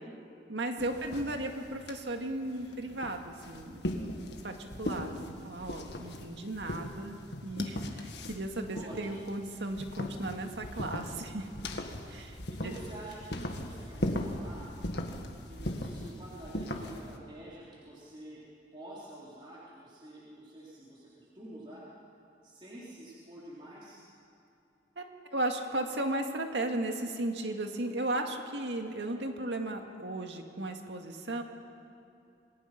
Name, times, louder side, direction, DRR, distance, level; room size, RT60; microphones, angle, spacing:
voice 1, 0.5-11.5 12.1-12.4 12.6-12.8 25.0-25.1 25.3-31.4, right 1 dB, 80° right, 4 dB, 2.1 m, -35 dB
sound 1, 0.8-17.2, left 1 dB, 70° left, 1.8 m, -39 dB
voice 2, 2.5-2.8 8.7-9.0 12.3-14.6 15.5-18.4 18.7-21.8 22.4-24.0, right 1 dB, 30° right, -7 dB, 3.9 m, -48 dB
27.5 x 21.0 x 5.9 m, 2.7 s
head